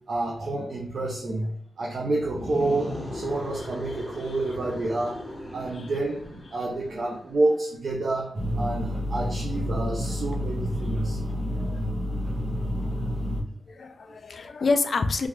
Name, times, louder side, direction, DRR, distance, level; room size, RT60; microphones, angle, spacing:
voice 1, 0.1-1.5 1.8-5.3 5.5-11.2 11.6-11.7 12.4-12.5, right 2 dB, 55° right, -2 dB, 0.5 m, -29 dB
sound 1, 2.2-7.2, left 1 dB, 10° left, 0.6 m, -38 dB
sound 2, 8.3-13.4, equal, 35° right, 0.9 m, -29 dB
voice 2, 13.7-15.3, left 3 dB, 50° left, 9 dB, 0.3 m, -28 dB
3.3 x 2.4 x 3.0 m, 0.64 s
wide cardioid pair, 155°, 0 cm